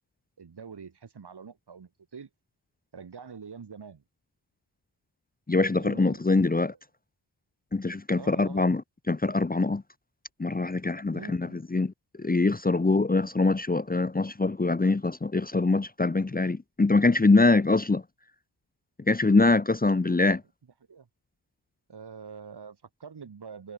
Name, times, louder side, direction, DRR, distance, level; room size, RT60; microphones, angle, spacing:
voice 1, 0.4-2.3 2.9-4.0 5.7-6.8 8.2-8.7 11.1-11.6 20.1-20.3 20.9-21.1 21.9-23.7, right 6 dB, 65° right, 5.8 m, -45 dB
voice 2, 5.5-6.7 7.7-8.8 9.1-9.8 10.4-11.9 12.2-18.0 19.1-20.4, left 3 dB, 20° left, 1.0 m, -23 dB
wide cardioid pair, 90°, 43 cm